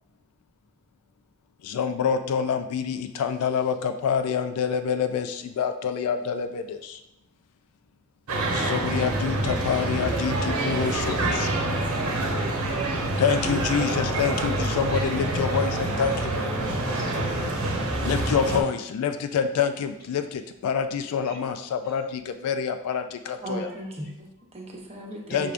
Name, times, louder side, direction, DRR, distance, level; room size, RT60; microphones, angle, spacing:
voice 1, 1.6-7.0 8.5-11.5 13.2-16.3 18.0-23.7 25.3-25.5, left 7 dB, 80° left, 8 dB, 0.3 m, -27 dB
sound 1, 8.3-18.6, right 2 dB, 75° right, 0.9 m, -26 dB
voice 2, 9.5-13.2 13.7-18.3 21.2-21.4 22.9-23.0 25.3-25.5, left 1 dB, 45° left, -2 dB, 1.1 m, -40 dB
voice 3, 23.4-25.5, equal, 30° right, -1 dB, 0.8 m, -37 dB
5.8 x 3.4 x 2.5 m, 0.86 s
head